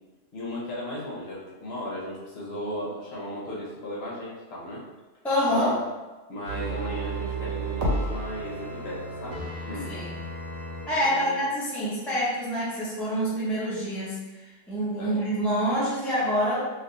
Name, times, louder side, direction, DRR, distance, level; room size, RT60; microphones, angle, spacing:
voice 1, 0.3-4.8 5.5-5.7 6.3-9.9 10.9-11.4 14.9-15.2, equal, 55° left, -6 dB, 1.0 m, -36 dB
voice 2, 5.2-5.8 9.8-10.1 10.9-16.6, equal, ahead, -8 dB, 0.5 m, -26 dB
sound 1, 6.4-10.9 11.2-11.3, right 2 dB, 80° right, 1.0 m, -32 dB
3.2 x 2.5 x 2.5 m, 1.2 s
omnidirectional pair, 1.3 m